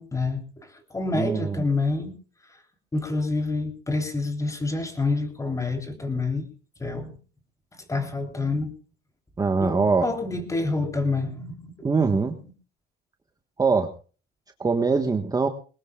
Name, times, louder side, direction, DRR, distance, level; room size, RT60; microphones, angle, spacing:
voice 1, 0.0-2.1 2.9-6.5 6.8-7.2 7.9-8.7 9.6-11.7 12.3-12.4, left 3 dB, 15° left, 6 dB, 3.4 m, -27 dB
voice 2, 1.1-1.7 9.4-10.1 11.8-12.4 13.6-13.9 14.6-15.5, right 4 dB, 20° right, 5 dB, 1.3 m, -22 dB
21.5 x 19.5 x 2.3 m, 0.37 s
cardioid pair, 120°, 20 cm